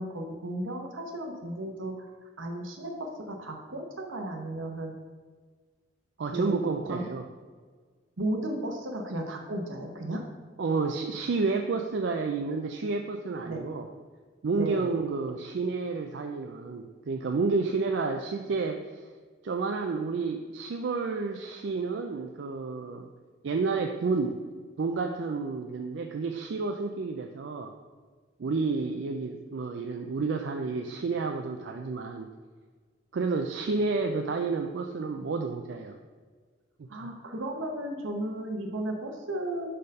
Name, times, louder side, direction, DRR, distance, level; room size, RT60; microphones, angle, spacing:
voice 1, 0.0-2.1 2.4-4.9 6.3-7.1 8.2-10.2 13.4-13.6 14.6-14.9 36.9-39.7, right 1 dB, 80° right, 3 dB, 0.9 m, -34 dB
voice 2, 6.2-7.2 10.6-13.9 14.4-18.8 19.4-23.1 23.4-24.4 24.8-27.7 28.4-32.3 33.1-36.0 36.8-37.1, right 4 dB, 60° right, 4 dB, 0.4 m, -30 dB
5.0 x 4.4 x 5.3 m, 1.5 s
head